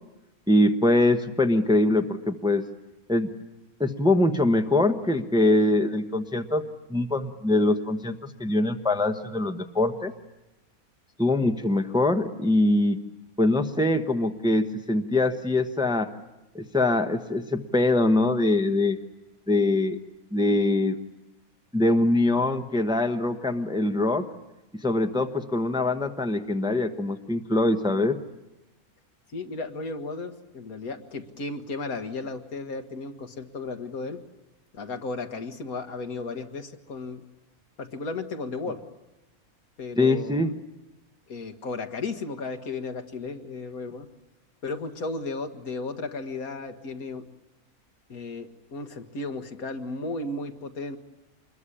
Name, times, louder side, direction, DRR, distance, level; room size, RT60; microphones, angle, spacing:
voice 1, 0.5-2.7 3.1-3.3 3.8-6.6 6.9-10.1 11.2-13.0 13.4-16.1 16.5-19.0 19.5-21.0 21.7-24.2 24.8-28.2 40.0-40.5, left 2 dB, 5° right, 7 dB, 1.0 m, -23 dB
voice 2, 29.3-34.2 34.7-37.2 37.8-38.8 39.8-40.5 41.3-44.1 44.6-47.2 48.1-51.0, left 3 dB, 75° left, 7 dB, 2.0 m, -34 dB
26.0 x 21.5 x 10.0 m, 0.96 s
omnidirectional pair, 1.5 m